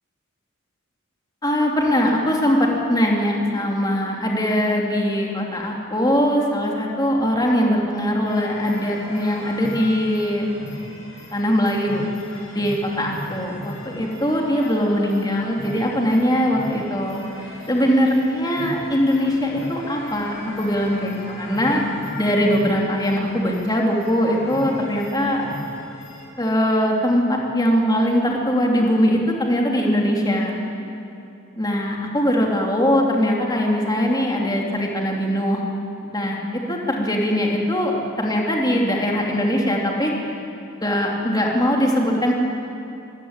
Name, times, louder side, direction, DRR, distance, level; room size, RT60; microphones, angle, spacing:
voice 1, 1.4-10.5 11.3-12.1 12.5-17.2 17.7-21.8 22.2-25.5 26.4-30.6 31.6-35.6 36.0-40.1 40.8-42.3, equal, 20° left, -1 dB, 2.9 m, -21 dB
sound 1, 8.3-26.3, left 1 dB, 80° left, 5.1 m, -38 dB
24.0 x 16.0 x 8.8 m, 2.8 s
head